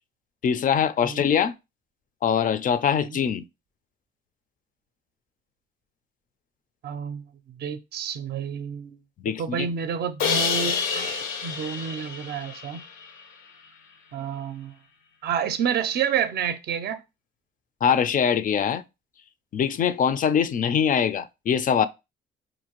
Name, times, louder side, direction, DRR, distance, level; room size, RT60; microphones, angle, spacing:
voice 1, 0.4-1.5 2.2-3.4 9.2-9.7 10.9-11.1 17.8-18.8 19.5-21.9, left 7 dB, 45° left, 0.4 m, -23 dB
voice 2, 6.8-7.2 7.6-9.0 9.4-12.8 14.1-14.7 15.2-17.0, right 8 dB, 55° right, 0.5 m, -29 dB
Crash cymbal, 10.2-13.3, left 6 dB, 85° left, 0.7 m, -28 dB
4.4 x 2.6 x 2.9 m
cardioid pair, 90°, 20 cm